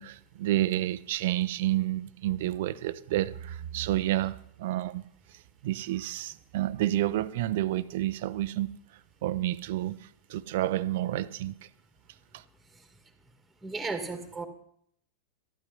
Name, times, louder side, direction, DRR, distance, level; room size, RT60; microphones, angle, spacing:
voice 1, 0.0-5.0 5.3-8.8 9.2-11.5 12.3-12.4, right 14 dB, 55° right, 0.7 m, -30 dB
voice 2, 13.6-14.4, right 3 dB, 5° right, 2.2 m, -34 dB
14.0 x 13.0 x 5.5 m
figure-of-eight pair, 90°, 0 cm